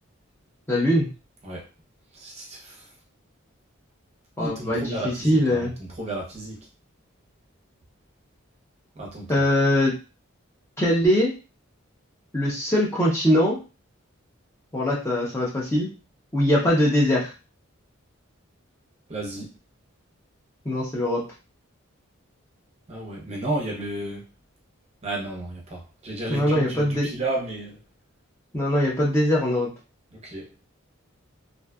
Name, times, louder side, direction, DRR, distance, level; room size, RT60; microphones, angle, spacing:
voice 1, 0.7-1.1 4.4-5.7 9.3-9.9 10.8-11.3 12.3-13.6 14.7-15.9 16.3-17.3 20.7-21.2 26.3-27.1 28.5-29.7, left 1 dB, 10° left, -4 dB, 0.5 m, -22 dB
voice 2, 2.1-2.9 4.4-6.6 8.9-9.4 19.1-19.5 22.9-24.3 25.0-27.8 30.1-30.5, right 2 dB, 30° right, -2 dB, 0.6 m, -33 dB
2.5 x 2.3 x 2.2 m, 0.33 s
head